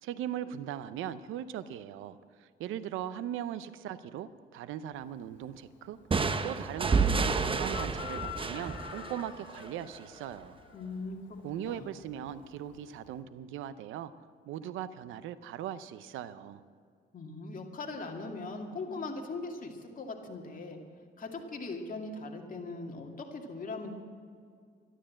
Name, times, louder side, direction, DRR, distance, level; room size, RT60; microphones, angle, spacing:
voice 1, 0.0-10.6 11.4-14.1 14.5-16.6, right 10 dB, 90° right, 14 dB, 0.7 m, -39 dB
Chicken rooster, 4.9-13.2, left 11 dB, 70° left, 1.2 m, -49 dB
sound 1, 6.1-9.8, right 4 dB, 25° right, 0.8 m, -30 dB
voice 2, 10.7-11.2 11.7-11.9 17.1-20.8 21.2-23.9, left 3 dB, 45° left, 2 dB, 2.3 m, -40 dB
12.5 x 12.0 x 7.5 m, 2.2 s
cardioid pair, 90°, 20 cm